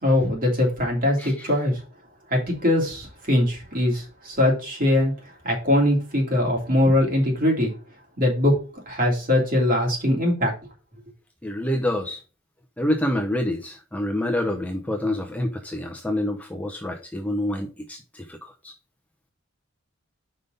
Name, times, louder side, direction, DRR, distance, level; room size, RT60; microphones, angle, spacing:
voice 1, 0.0-1.8 2.3-5.1 5.4-7.7 8.2-8.5 8.9-10.5, left 1 dB, 45° right, -1 dB, 3.1 m, -21 dB
voice 2, 1.2-1.5 11.4-12.2 12.8-18.7, left 1 dB, 5° left, 2 dB, 0.8 m, -27 dB
6.0 x 5.5 x 5.3 m, 0.34 s
head